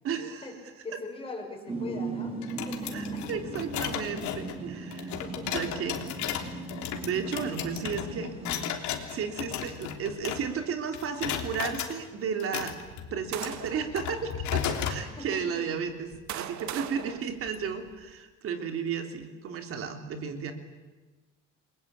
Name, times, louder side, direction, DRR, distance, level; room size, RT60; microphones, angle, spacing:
voice 1, 0.0-0.5 2.9-5.1 5.5-6.6 7.0-8.5 9.1-12.7 13.1-20.5, right 6 dB, 50° right, 6 dB, 3.3 m, -33 dB
voice 2, 0.8-3.2 5.1-5.5 15.0-15.7 16.8-17.0, left 3 dB, 20° left, 1 dB, 6.2 m, -42 dB
sound 1, 1.7-8.7, right 3 dB, 20° right, 5.2 m, -38 dB
sound 2, 2.4-10.7 10.9-11.9 12.4-15.0, left 9 dB, 75° left, 3.3 m, -35 dB
sound 3, 12.8-14.0 14.7-14.9 15.8-18.1, right 11 dB, 70° right, 1.7 m, -40 dB
29.5 x 22.0 x 8.8 m, 1.2 s
cardioid pair, 170°, 29 cm